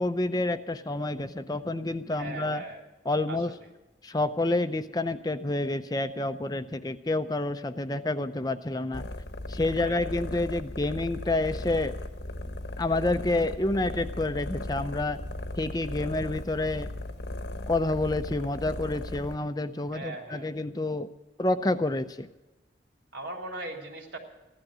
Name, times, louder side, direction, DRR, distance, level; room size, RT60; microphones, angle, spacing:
voice 1, 0.0-2.6 3.1-3.5 4.0-9.0 9.5-11.9 12.8-15.2 15.6-16.9 17.7-21.1 21.4-22.3, left 2 dB, 20° left, 10 dB, 0.6 m, -28 dB
voice 2, 2.1-2.8 3.3-3.7 9.6-10.1 19.9-20.5 23.1-24.2, right 2 dB, 85° right, 1 dB, 3.3 m, -39 dB
sound 1, 8.9-19.4, left 1 dB, 75° left, 1.2 m, -37 dB
15.5 x 12.0 x 6.1 m, 1.1 s
head